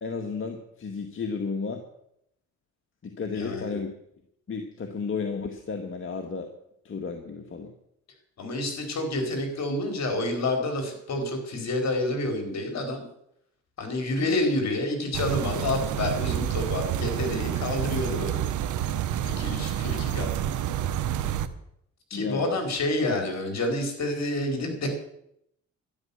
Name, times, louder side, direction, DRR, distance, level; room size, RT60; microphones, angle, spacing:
voice 1, 0.0-1.8 3.0-3.9 4.5-6.5 6.8-7.7 22.1-22.6 23.1-23.3, left 5 dB, 45° left, 4 dB, 1.8 m, -33 dB
voice 2, 3.3-3.8 8.4-13.0 13.8-18.5 19.2-20.3 22.1-24.9, left 2 dB, 60° left, 4 dB, 4.6 m, -28 dB
sound 1, 15.1-21.5, right 10 dB, 75° right, 1.1 m, -28 dB
12.5 x 11.0 x 7.1 m, 0.75 s
cardioid pair, 90°, 30 cm